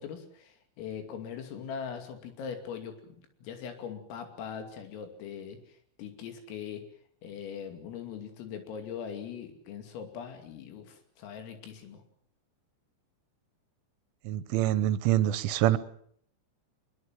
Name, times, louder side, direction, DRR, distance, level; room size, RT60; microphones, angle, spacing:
voice 1, 0.0-3.2 3.4-5.6 6.0-6.8 7.2-12.0, left 7 dB, 90° left, 6 dB, 5.4 m, -41 dB
voice 2, 14.3-15.8, right 13 dB, 80° right, 14 dB, 3.5 m, -25 dB
23.0 x 22.5 x 7.6 m, 0.63 s
omnidirectional pair, 5.8 m